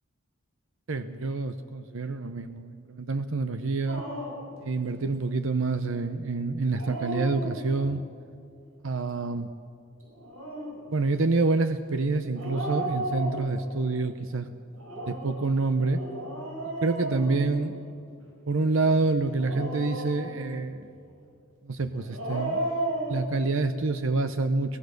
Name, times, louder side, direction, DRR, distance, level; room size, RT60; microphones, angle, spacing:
voice 1, 0.9-4.0 4.6-8.0 8.8-9.5 10.9-14.5 15.1-16.0 16.8-17.8 18.5-20.9 21.6-22.6 23.1-24.8, right 3 dB, 65° right, 10 dB, 0.8 m, -27 dB
Dog, 3.9-4.5 6.6-8.0 10.1-10.8 12.3-13.8 14.7-17.9 19.2-20.6 21.9-23.3, right 1 dB, 80° right, 6.4 m, -34 dB
23.0 x 17.5 x 6.6 m, 2.4 s
head